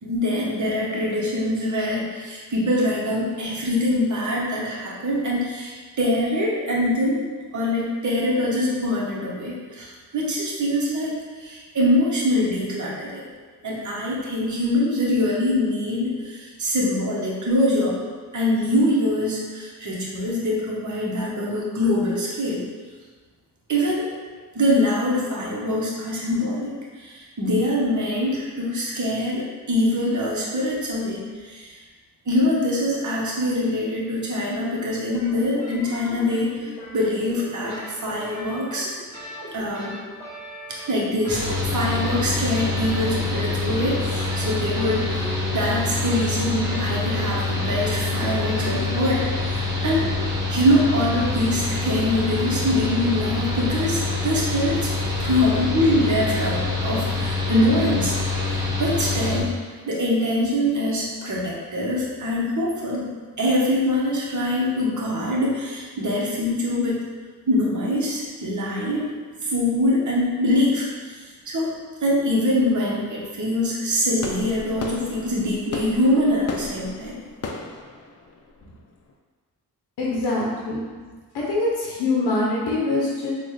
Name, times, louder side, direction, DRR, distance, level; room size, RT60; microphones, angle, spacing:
voice 1, 0.0-7.2 7.5-13.2 13.6-18.0 18.3-22.6 23.7-24.1 24.5-31.8 32.3-38.9 39.5-39.9 40.7-50.1 50.5-54.8 55.2-58.1 58.5-59.5 59.9-63.1 63.4-67.0 67.5-69.1 69.4-71.7 72.0-77.1, left 1 dB, 45° right, -4 dB, 1.1 m, -24 dB
sound 1, 35.1-48.7, equal, 10° left, 1.4 m, -39 dB
Mechanical fan, 41.3-59.4, left 3 dB, 10° right, 1.3 m, -26 dB
sound 2, 74.2-79.1, left 3 dB, 40° left, 0.5 m, -35 dB
voice 2, 80.0-80.8 81.3-83.3, left 2 dB, 75° left, -4 dB, 0.8 m, -24 dB
3.9 x 2.4 x 3.2 m, 1.5 s
supercardioid pair, 45°, 40 cm